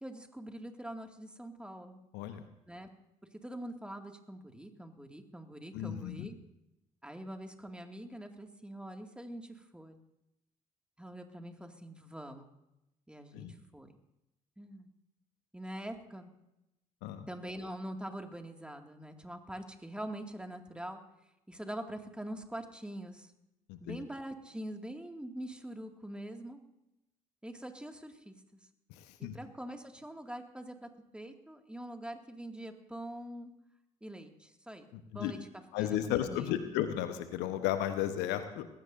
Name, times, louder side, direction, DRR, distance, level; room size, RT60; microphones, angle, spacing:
voice 1, 0.0-2.0 2.7-2.9 3.4-6.4 7.0-9.9 11.0-12.5 13.1-13.9 14.6-14.9 15.5-16.3 17.3-21.0 21.5-23.3 23.8-26.6 27.4-28.6 29.2-33.5 34.0-34.9 35.1-35.4 35.8-36.6, right 1 dB, 5° right, 4 dB, 2.2 m, -44 dB
voice 2, 5.7-6.3 13.3-13.5 17.0-17.3 23.7-24.0 28.9-29.3 34.9-35.3 35.7-38.7, left 11 dB, 70° left, 9 dB, 1.1 m, -34 dB
20.5 x 18.0 x 2.7 m, 0.88 s
hypercardioid pair, 50°, 18 cm